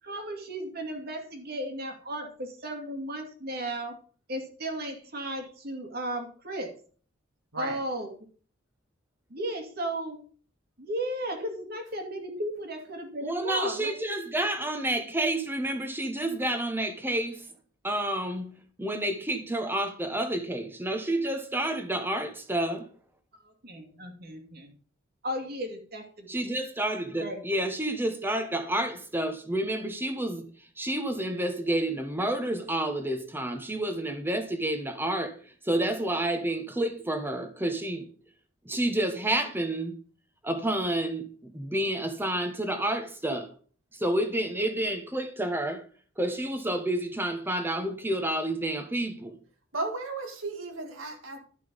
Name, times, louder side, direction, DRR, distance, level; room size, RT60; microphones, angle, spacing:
voice 1, 0.0-4.0 4.3-6.8 7.6-8.1 9.3-10.2 10.8-13.9 23.4-24.7 25.2-26.3 27.2-27.4, right 1 dB, 50° right, 2.4 m, -35 dB
voice 2, 13.2-17.5 17.8-18.5 18.8-22.9 26.3-30.5 30.8-35.4 35.6-38.1 38.6-40.0 40.4-43.5 43.9-45.8 46.2-49.4, right 1 dB, 10° right, 1.4 m, -29 dB
voice 3, 49.7-51.4, right 3 dB, 80° right, 2.2 m, -34 dB
12.0 x 6.0 x 5.3 m
head